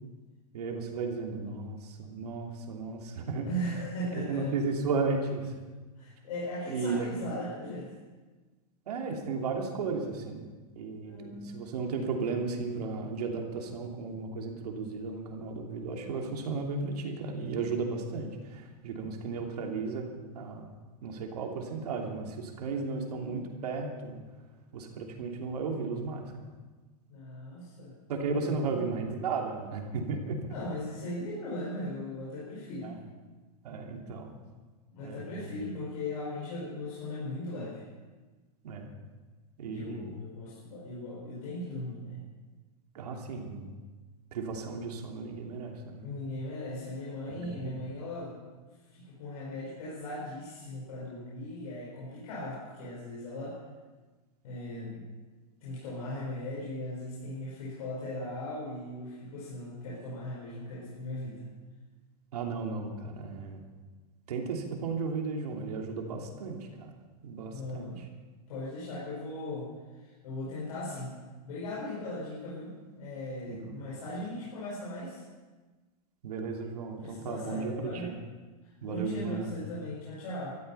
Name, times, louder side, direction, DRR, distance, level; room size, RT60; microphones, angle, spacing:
voice 1, 0.5-3.5 4.3-5.5 6.7-7.1 8.9-10.5 10.7-20.8 21.0-24.2 24.7-26.5 28.1-30.4 32.8-33.0 33.6-34.4 35.0-35.5 38.6-38.9 39.6-40.1 42.9-43.7 44.3-46.1 47.3-47.5 62.3-63.6 64.3-66.9 67.2-67.9 73.5-73.8 76.2-78.1 78.8-79.5, right 4 dB, 85° right, 1 dB, 3.0 m, -34 dB
voice 2, 3.4-4.5 6.0-7.9 11.0-11.9 27.1-28.0 28.4-28.8 30.5-33.0 34.9-37.8 39.7-42.2 46.0-48.4 48.9-53.6 54.4-55.1 55.6-61.5 67.5-68.0 68.5-71.1 71.4-75.2 77.0-78.1 78.6-80.5, left 1 dB, 65° left, -6 dB, 5.3 m, -38 dB
17.0 x 14.0 x 5.7 m, 1.3 s
supercardioid pair, 150°, 20 cm